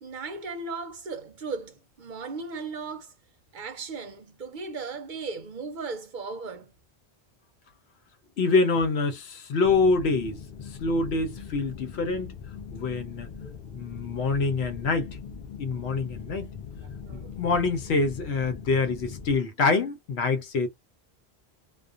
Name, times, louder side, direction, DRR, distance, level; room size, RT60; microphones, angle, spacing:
voice 1, 0.0-3.1 3.5-6.7 13.2-13.6 16.8-17.4, right 4 dB, 55° right, 0.7 m, -37 dB
voice 2, 8.4-10.4 10.8-12.3 12.7-13.3 13.7-15.1 15.6-16.5 17.1-20.7, left 3 dB, 85° left, 1.0 m, -25 dB
sound 1, 9.6-19.4, left 6 dB, 55° left, 0.6 m, -41 dB
2.4 x 2.1 x 2.4 m
omnidirectional pair, 1.1 m